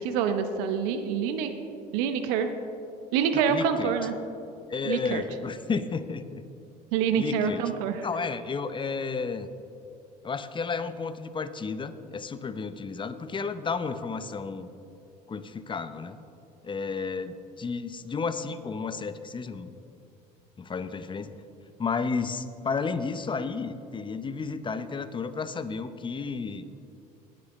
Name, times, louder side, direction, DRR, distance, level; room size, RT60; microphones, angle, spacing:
voice 1, 0.0-1.5 1.9-2.5 3.1-4.1 4.8-5.2 6.9-8.0, right 7 dB, 70° right, 8 dB, 0.9 m, -26 dB
voice 2, 3.3-3.9 4.7-6.4 7.1-7.6 8.0-9.5 10.2-14.7 15.3-16.2 16.6-19.7 20.6-21.4 21.8-26.7, left 5 dB, 25° left, 11 dB, 0.7 m, -32 dB
18.5 x 7.7 x 3.2 m, 2.5 s
hypercardioid pair, 65°, 21 cm